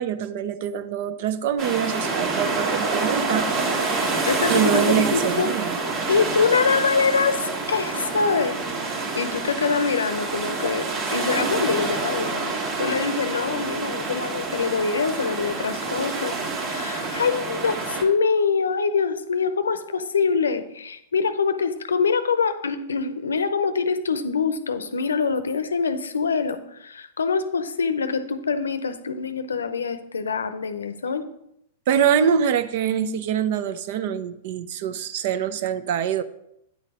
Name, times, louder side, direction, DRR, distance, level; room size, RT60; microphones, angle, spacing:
voice 1, 0.0-3.7 4.5-5.8 31.9-36.2, right 8 dB, 55° right, 12 dB, 0.5 m, -24 dB
sound 1, 1.6-18.0, right 3 dB, 40° right, 1.5 m, -27 dB
voice 2, 4.3-5.5 6.1-8.6 9.2-31.3, left 5 dB, 80° left, 11 dB, 0.6 m, -24 dB
9.3 x 4.1 x 4.9 m, 0.79 s
hypercardioid pair, 105°, 0 cm